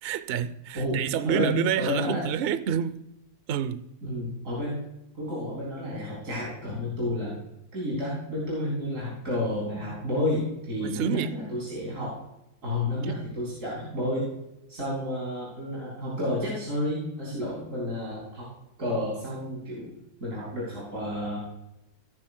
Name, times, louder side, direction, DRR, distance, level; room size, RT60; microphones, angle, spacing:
voice 1, 0.0-3.0 3.5-3.8 10.8-11.3 13.0-13.1, right 9 dB, 70° right, 0.5 m, -28 dB
voice 2, 0.7-2.2 4.0-4.8 5.1-7.4 7.7-12.2 12.6-14.3 14.7-18.5 18.8-19.9 20.2-21.4, left 1 dB, 55° right, 4.3 m, -31 dB
17.0 x 9.7 x 2.2 m
omnidirectional pair, 1.7 m